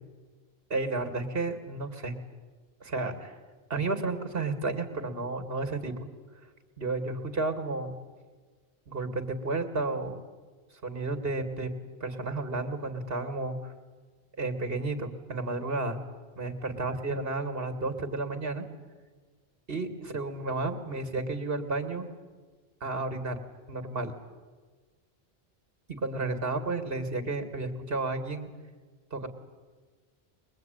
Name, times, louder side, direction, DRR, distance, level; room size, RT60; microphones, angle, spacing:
voice 1, 0.7-2.2 2.8-3.3 3.7-6.1 6.8-7.9 8.9-10.2 10.8-11.7 12.0-13.7 14.4-16.0 16.4-18.7 19.7-22.1 22.8-23.4 23.7-24.1 25.9-28.5 29.1-29.3, right 3 dB, 65° right, 7 dB, 2.5 m, -32 dB
22.5 x 22.0 x 9.3 m, 1.5 s
omnidirectional pair, 1.0 m